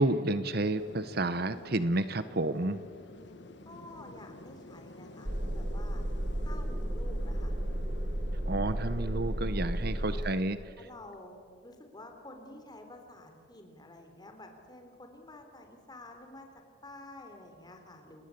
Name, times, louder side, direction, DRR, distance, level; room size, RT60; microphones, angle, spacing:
voice 1, 0.0-2.8 8.5-10.6, right 2 dB, 50° right, 13 dB, 1.0 m, -30 dB
sound 1, 0.8-10.3, left 1 dB, 60° left, 1.5 m, -50 dB
voice 2, 3.7-6.0 6.4-7.5 10.1-10.4 10.8-16.5 16.8-18.2, left 2 dB, 20° left, 4 dB, 3.7 m, -50 dB
sound 2, 5.3-10.3, right 1 dB, 20° right, 1.0 m, -33 dB
29.5 x 20.5 x 8.5 m, 2.1 s
head